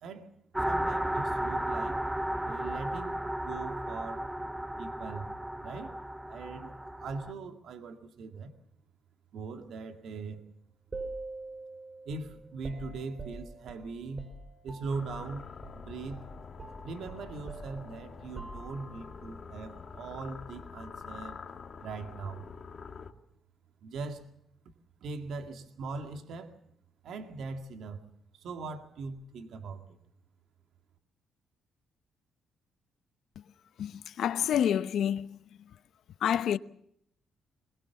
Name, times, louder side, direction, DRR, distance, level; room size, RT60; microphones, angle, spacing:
voice 1, 0.0-0.3 0.6-2.0 2.4-4.3 4.8-5.3 5.6-5.9 6.3-8.5 9.3-10.4 12.1-14.3 14.6-15.5 15.7-16.2 16.8-21.4 21.8-22.5 23.8-24.3 25.0-26.6 27.0-28.0 28.3-30.0, right 4 dB, 75° right, 2.2 m, -40 dB
sound 1, 0.5-7.3, right 1 dB, 10° right, 0.9 m, -34 dB
sound 2, 10.9-15.4 15.6-15.8 16.1-19.1, right 3 dB, 35° right, 4.5 m, -44 dB
sound 3, 14.9-23.1, left 5 dB, 45° left, 2.3 m, -46 dB
voice 2, 33.8-35.3 36.2-36.6, left 9 dB, 70° left, 0.9 m, -28 dB
22.0 x 21.5 x 7.0 m
cardioid pair, 90°, 0 cm